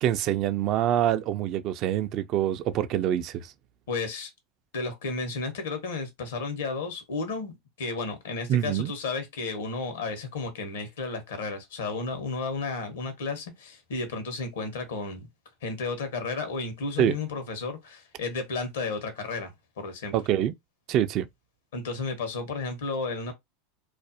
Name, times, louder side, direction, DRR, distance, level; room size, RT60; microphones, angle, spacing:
voice 1, 0.0-3.5 8.5-8.9 17.0-17.2 20.1-20.5 20.9-21.3, right 11 dB, 50° right, 0.3 m, -25 dB
voice 2, 3.9-4.3 4.7-7.5 7.8-15.3 15.6-20.1 21.7-23.3, left 4 dB, 80° left, 0.8 m, -33 dB
2.4 x 2.0 x 2.6 m
hypercardioid pair, 105°, 0 cm